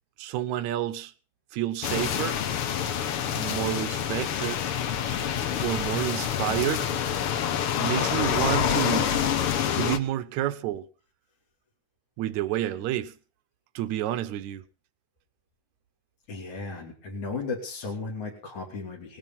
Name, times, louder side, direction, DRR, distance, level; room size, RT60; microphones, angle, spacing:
voice 1, 0.2-1.1 1.5-2.4 3.3-4.6 5.6-7.0 7.8-9.1 9.7-10.9 12.2-13.1 13.8-14.6, right 13 dB, 75° right, 2.2 m, -29 dB
sound 1, 1.8-10.0, left 9 dB, 60° left, 1.7 m, -27 dB
voice 2, 16.3-19.2, left 4 dB, 80° left, 4.6 m, -35 dB
19.0 x 10.5 x 5.6 m
omnidirectional pair, 3.4 m